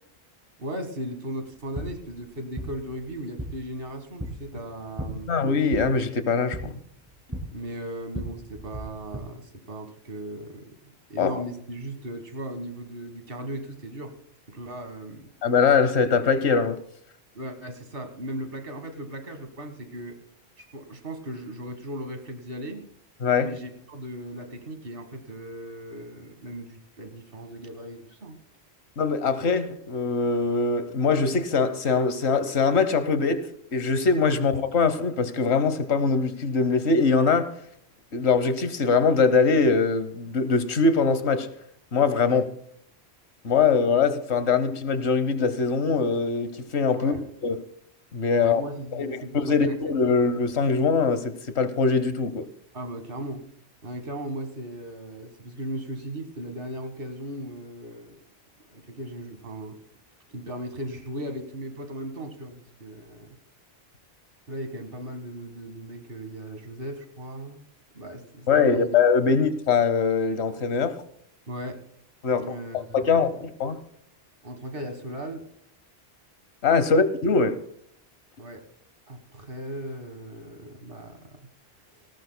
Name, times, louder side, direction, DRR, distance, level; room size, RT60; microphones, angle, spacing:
voice 1, 0.6-5.3 7.5-14.1 14.5-15.3 17.3-20.2 20.6-22.9 23.4-28.4 34.3-34.5 42.3-42.5 46.9-47.2 48.4-50.4 52.7-53.4 53.8-58.3 58.7-59.8 60.3-63.4 64.5-67.7 67.9-69.0 69.3-69.4 71.5-71.8 72.3-73.4 74.4-75.4 78.4-78.6 79.1-81.4, right 1 dB, 60° right, 1.8 m, -37 dB
sound 1, 1.5-9.2, right 1 dB, 15° right, 2.4 m, -38 dB
voice 2, 5.3-6.8 11.2-11.3 15.4-16.8 23.2-23.5 29.0-37.5 38.1-41.5 41.9-42.5 43.4-47.1 47.4-47.6 48.1-48.6 48.9-52.5 68.5-71.0 72.2-73.8 76.6-77.6, left 5 dB, 85° left, 1.3 m, -22 dB
18.5 x 18.5 x 2.2 m
omnidirectional pair, 1.1 m